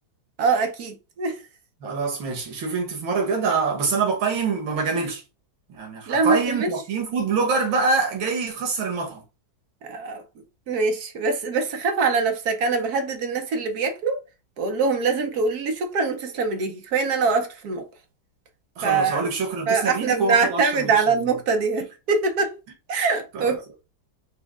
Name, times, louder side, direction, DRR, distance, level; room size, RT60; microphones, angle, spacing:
voice 1, 0.4-1.4 6.1-6.7 9.8-10.2 10.7-14.2 14.6-17.9 18.8-19.3 19.7-22.6 22.9-23.8, right 4 dB, 60° right, 1.2 m, -23 dB
voice 2, 1.8-5.2 5.7-9.2 18.8-20.9 23.3-23.6, right 4 dB, 85° right, 2.1 m, -25 dB
5.2 x 2.3 x 3.5 m
omnidirectional pair, 2.1 m